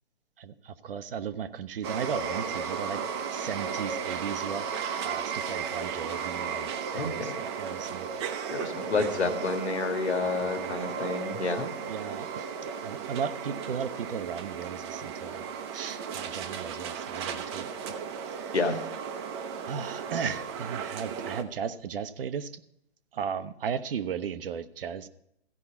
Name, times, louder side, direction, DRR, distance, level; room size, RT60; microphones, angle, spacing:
voice 1, 0.4-4.6 5.0-8.1 8.9-9.3 10.2-10.7 11.9-15.4 15.7-18.0 18.3-18.8 19.7-22.6 23.1-25.1, right 7 dB, 60° right, 12 dB, 0.8 m, -36 dB
sound 1, 1.8-21.4, right 6 dB, 25° right, 0.7 m, -35 dB
voice 2, 6.9-7.4 8.5-11.7 18.5-18.8, left 3 dB, 90° left, 6 dB, 1.8 m, -29 dB
15.0 x 5.5 x 6.9 m, 0.77 s
hypercardioid pair, 145°, 32 cm